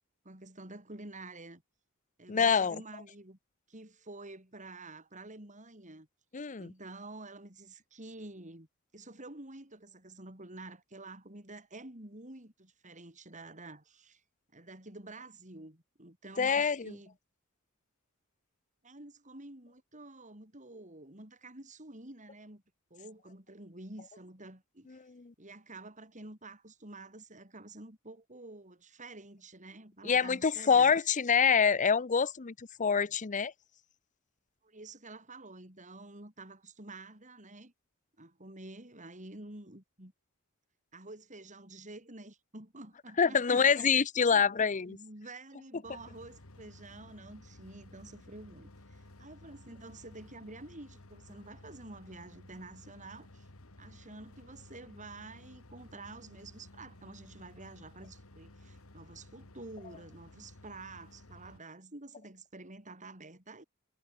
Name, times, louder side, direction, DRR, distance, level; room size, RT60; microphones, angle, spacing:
voice 1, 0.3-1.6 2.2-3.4 3.7-6.1 6.6-8.7 8.9-14.2 14.5-17.2 18.8-22.6 22.9-25.0 25.4-30.9 34.6-37.7 38.2-40.1 40.9-43.9 44.3-44.5 44.9-53.5 53.8-63.6, right 2 dB, 35° right, 6.9 m, -49 dB
voice 2, 2.3-2.8 6.3-6.7 16.4-17.0 24.9-25.3 30.0-33.5 43.2-45.0, left 6 dB, 35° left, 0.7 m, -26 dB
sound 1, 45.8-61.6, left 1 dB, 85° left, 2.2 m, -55 dB
head